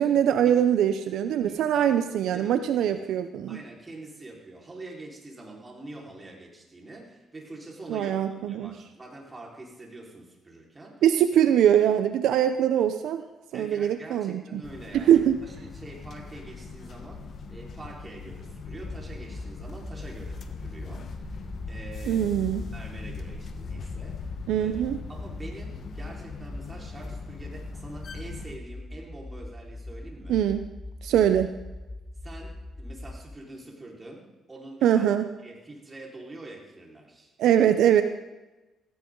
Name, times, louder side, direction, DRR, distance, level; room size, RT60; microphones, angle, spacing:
voice 1, 0.0-3.6 7.9-8.7 11.0-13.2 13.5-14.6 14.9-15.4 22.1-22.6 24.5-25.0 30.3-30.7 31.0-31.5 34.8-35.3 37.4-38.0, right 10 dB, 80° right, 9 dB, 0.7 m, -22 dB
voice 2, 1.5-1.9 2.3-2.9 3.5-11.0 13.5-22.3 22.7-24.7 25.1-30.4 32.2-35.1 35.4-37.3, right 2 dB, 25° right, -2 dB, 4.8 m, -45 dB
sound 1, 14.6-28.6, left 5 dB, 55° left, 1.4 m, -41 dB
sound 2, 18.6-33.4, left 1 dB, 10° left, 0.9 m, -41 dB
17.0 x 16.5 x 4.0 m, 1.1 s
cardioid pair, 90°, 0 cm